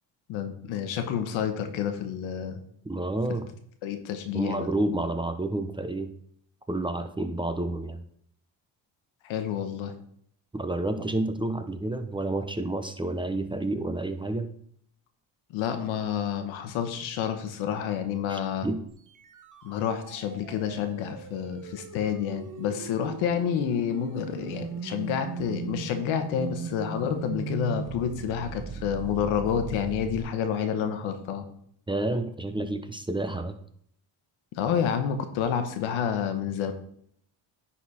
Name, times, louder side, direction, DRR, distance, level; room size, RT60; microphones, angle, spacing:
voice 1, 0.3-2.6 3.8-4.7 9.2-9.9 15.5-18.7 19.6-31.4 34.6-36.7, left 8 dB, 85° left, 7 dB, 1.2 m, -29 dB
voice 2, 2.8-3.5 4.3-6.1 6.7-8.0 10.5-14.5 18.3-18.9 31.9-33.6, right 2 dB, 10° right, 8 dB, 0.7 m, -30 dB
sound 1, 18.9-30.2, right 5 dB, 40° right, 1.1 m, -38 dB
9.9 x 4.2 x 4.2 m, 0.67 s
cardioid pair, 85°, 46 cm